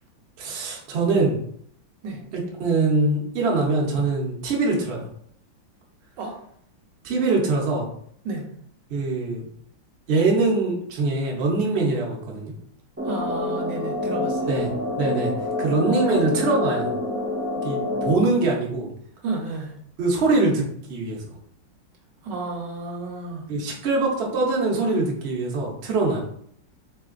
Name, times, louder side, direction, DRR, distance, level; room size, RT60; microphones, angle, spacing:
voice 1, 0.4-1.4 2.3-5.1 7.0-7.9 8.9-9.4 10.1-12.5 14.5-14.7 15.0-15.3 15.6-16.9 17.6-18.9 20.0-21.2 23.5-26.2, right 3 dB, 55° right, -2 dB, 0.7 m, -23 dB
sound 1, 13.0-18.1, left 2 dB, 20° right, 0.4 m, -27 dB
voice 2, 13.0-14.4 19.2-19.7 22.2-23.5, right 3 dB, 70° right, 1 dB, 1.3 m, -32 dB
3.7 x 3.3 x 2.4 m, 0.64 s
omnidirectional pair, 2.1 m